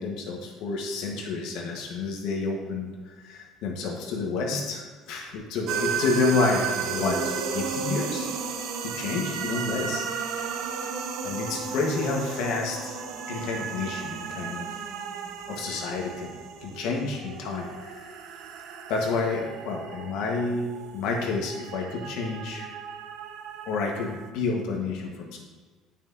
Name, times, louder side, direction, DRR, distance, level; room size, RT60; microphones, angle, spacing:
voice 1, 0.0-8.3 8.8-10.0 10.4-10.6 10.8-10.9 11.2-14.7 15.5-18.1 18.9-22.7 23.7-25.4, left 3 dB, 75° left, 0 dB, 1.4 m, -29 dB
sound 1, 5.7-24.3, right 6 dB, 70° right, 0.6 m, -34 dB
8.8 x 5.8 x 2.8 m, 1.4 s
cardioid pair, 110°, 0 cm